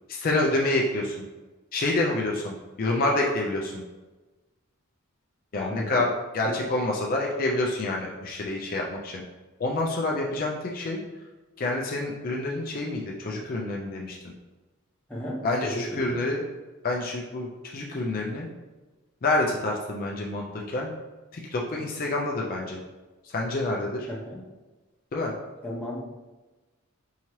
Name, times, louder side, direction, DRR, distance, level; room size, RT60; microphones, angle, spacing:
voice 1, 0.1-1.3 1.7-3.8 5.5-6.1 6.3-9.2 9.6-11.0 11.6-14.3 15.4-16.4 16.8-18.5 19.2-20.9 21.3-22.8 23.2-24.1 25.1-25.3, left 2 dB, 45° left, -1 dB, 0.4 m, -28 dB
voice 2, 5.6-6.0 6.4-6.6 15.1-16.3 24.1-24.4 25.6-26.0, left 1 dB, 5° left, -6 dB, 0.7 m, -34 dB
4.7 x 2.8 x 3.0 m, 1.2 s
head